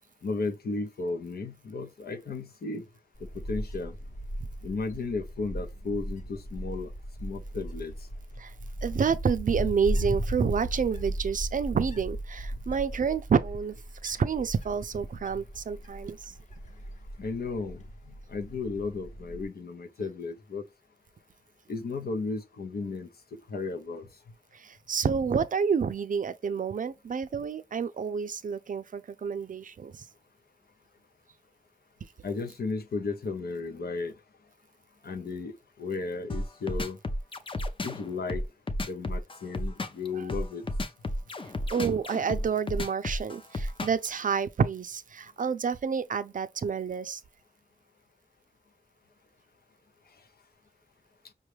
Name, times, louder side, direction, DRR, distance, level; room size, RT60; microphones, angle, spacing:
voice 1, 0.2-2.8 3.3-3.9 4.6-6.9 7.2-7.9 17.2-20.6 21.7-23.1 23.5-24.1 32.2-34.1 35.0-35.5 35.8-37.0 37.8-38.4 38.8-40.6, left 3 dB, 85° left, 0.7 m, -34 dB
Wind, 3.2-19.5, right 1 dB, 50° left, 1.0 m, -37 dB
voice 2, 8.8-13.7 14.0-16.3 24.5-30.0 40.1-40.3 41.7-47.2, right 6 dB, 60° right, 0.4 m, -29 dB
sound 1, 36.3-44.1, left 1 dB, 35° left, 0.5 m, -32 dB
5.4 x 2.3 x 3.1 m
wide cardioid pair, 105°, 16 cm